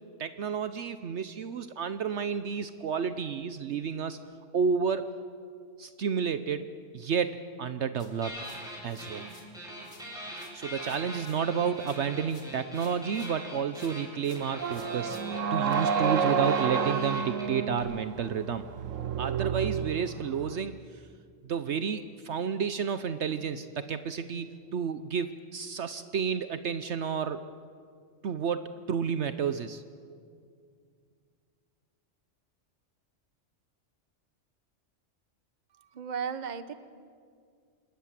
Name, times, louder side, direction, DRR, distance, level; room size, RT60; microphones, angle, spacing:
voice 1, 0.2-4.2 4.5-5.1 5.8-8.4 8.8-9.3 10.5-15.2 15.5-18.7 19.2-20.8 21.4-27.4 28.2-29.8, right 6 dB, 65° right, 12 dB, 1.0 m, -31 dB
sound 1, 8.0-9.5 9.8-13.4 13.7-15.7, left 2 dB, 70° left, 3.0 m, -57 dB
sound 2, 8.2-9.3 9.5-17.8, equal, 5° right, 6.2 m, -42 dB
sound 3, 14.6-20.6, right 6 dB, 85° right, 1.2 m, -30 dB
voice 2, 35.7-36.7, right 7 dB, 40° right, 12 dB, 1.1 m, -35 dB
27.0 x 20.0 x 7.5 m, 2.2 s
omnidirectional pair, 1.3 m